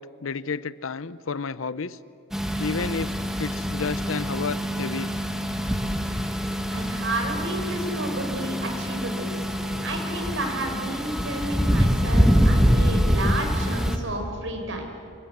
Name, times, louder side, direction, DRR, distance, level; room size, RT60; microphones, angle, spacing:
voice 1, 0.0-2.0 2.6-3.1 3.4-5.1, left 5 dB, 90° left, 17 dB, 0.7 m, -31 dB
sound 1, 2.3-14.0, equal, ahead, 1.5 m, -25 dB
voice 2, 6.7-9.3 9.8-14.9, right 1 dB, 70° right, 4 dB, 4.8 m, -31 dB
26.5 x 24.0 x 8.1 m, 2.7 s
head